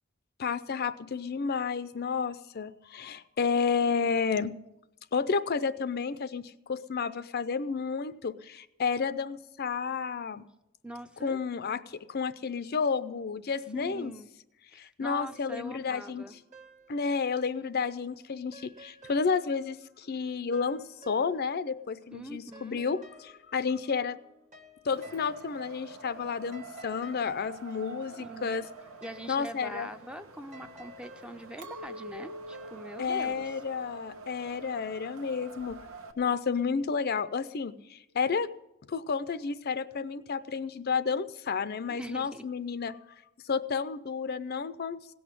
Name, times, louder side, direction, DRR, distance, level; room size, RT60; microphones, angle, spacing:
voice 1, 0.4-4.6 5.1-10.4 11.2-14.1 14.7-16.2 16.9-24.2 24.8-28.7 29.3-29.9 33.0-35.8 36.2-38.5 38.9-43.0 43.4-45.0, left 5 dB, 50° left, 13 dB, 0.5 m, -31 dB
voice 2, 10.8-11.4 13.7-14.3 14.7-16.3 22.1-22.8 28.2-28.6 29.0-33.5 41.9-42.4, right 1 dB, 5° right, 8 dB, 0.5 m, -43 dB
sound 1, 15.1-17.7 18.0-21.7 22.0-33.1, right 1 dB, 35° right, 1.3 m, -56 dB
Wind, 24.9-36.1, right 3 dB, 80° right, 1.1 m, -48 dB
Chink clink, 31.6-36.9, left 1 dB, 60° right, 1.2 m, -47 dB
17.0 x 6.2 x 10.0 m, 0.88 s
head